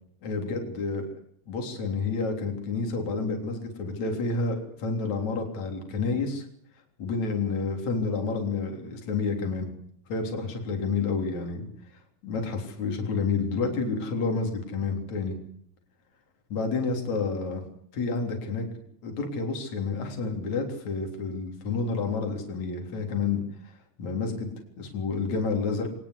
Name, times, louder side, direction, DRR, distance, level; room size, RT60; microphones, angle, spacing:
voice 1, 0.2-1.1 1.5-6.5 7.0-9.7 10.1-11.7 12.2-15.4 16.5-17.6 17.9-18.6 19.0-23.4 24.0-24.5 24.8-25.9, left 4 dB, 50° left, 3 dB, 4.7 m, -29 dB
22.5 x 19.5 x 8.1 m, 0.66 s
omnidirectional pair, 4.3 m